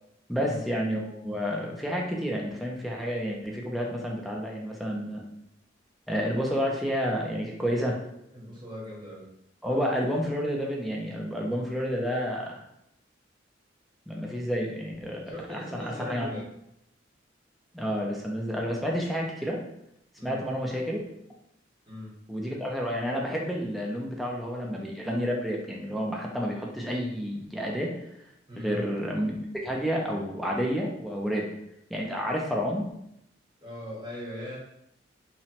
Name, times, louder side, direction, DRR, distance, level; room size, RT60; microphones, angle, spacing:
voice 1, 0.3-5.2 6.1-8.0 9.6-12.6 14.1-15.2 15.5-16.4 17.7-19.6 20.2-21.0 22.3-27.9 28.6-31.5 31.9-32.9, equal, ahead, -2 dB, 0.4 m, -30 dB
voice 2, 8.3-9.3 15.3-16.5 20.2-20.5 21.9-22.1 28.5-28.8 33.6-34.6, left 1 dB, 25° right, -6 dB, 0.9 m, -39 dB
2.9 x 2.1 x 2.8 m, 0.79 s
head